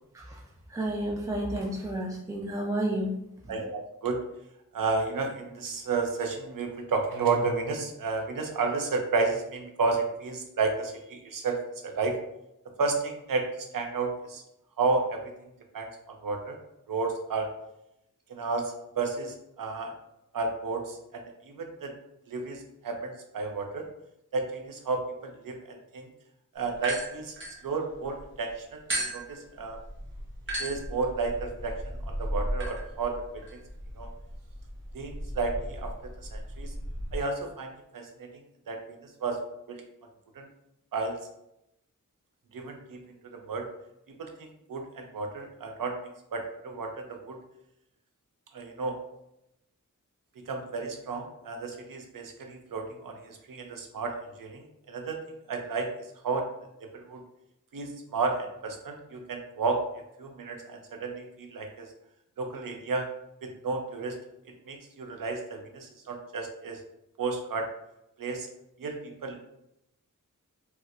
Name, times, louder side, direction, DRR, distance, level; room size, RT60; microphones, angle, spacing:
voice 1, 0.7-3.1 3.5-3.6, right 1 dB, 10° right, -2 dB, 0.4 m, -31 dB
voice 2, 3.5-4.2 4.7-12.2 12.8-14.4 14.8-15.3 15.7-16.6 16.9-17.5 18.3-19.9 20.3-21.9 22.3-23.9 24.3-26.1 26.5-27.4 27.6-29.8 30.6-33.6 34.0-34.1 34.9-35.9 36.2-36.7 37.1-38.3 38.7-39.4 39.7-39.8 40.3-40.5 40.9-41.2 42.5-43.0 43.3-43.7 44.2-47.4 48.5-49.0 50.5-56.5 56.8-57.2 57.7-59.8 60.2-61.9 62.4-63.1 63.4-64.2 64.7-66.8 67.2-67.7 68.2-68.5 68.8-69.4, right 4 dB, 80° right, 3 dB, 0.6 m, -32 dB
sound 1, 26.7-28.2 28.9-37.2, right 1 dB, 35° right, 0.8 m, -36 dB
4.2 x 2.1 x 2.4 m, 0.83 s
wide cardioid pair, 80°, 33 cm